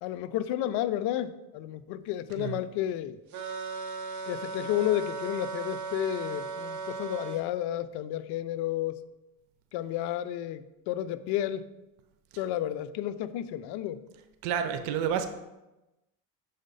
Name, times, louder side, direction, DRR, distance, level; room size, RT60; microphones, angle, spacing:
voice 1, 0.0-3.2 4.3-9.0 9.7-11.7 12.4-14.1, left 12 dB, 65° left, 12 dB, 0.6 m, -31 dB
sound 1, 3.3-7.4, right 4 dB, 40° right, 0.8 m, -37 dB
voice 2, 14.4-15.3, right 8 dB, 85° right, 8 dB, 0.8 m, -29 dB
6.5 x 4.1 x 5.4 m, 0.98 s
cardioid pair, 110°, 43 cm